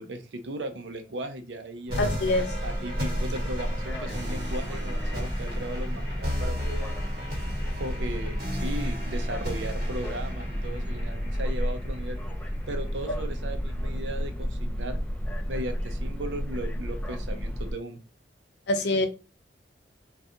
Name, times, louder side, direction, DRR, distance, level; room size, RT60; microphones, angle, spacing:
voice 1, 0.0-2.1 2.6-6.9 7.8-12.2 12.7-15.0 15.5-18.0, right 1 dB, 85° right, 7 dB, 0.6 m, -37 dB
sound 1, 1.9-17.7, equal, 10° left, 0.3 m, -31 dB
sound 2, 1.9-12.9, left 1 dB, 55° right, 1.2 m, -37 dB
voice 2, 2.0-2.5 18.7-19.1, left 2 dB, 70° left, 8 dB, 0.5 m, -24 dB
3.5 x 2.4 x 2.7 m, 0.32 s
head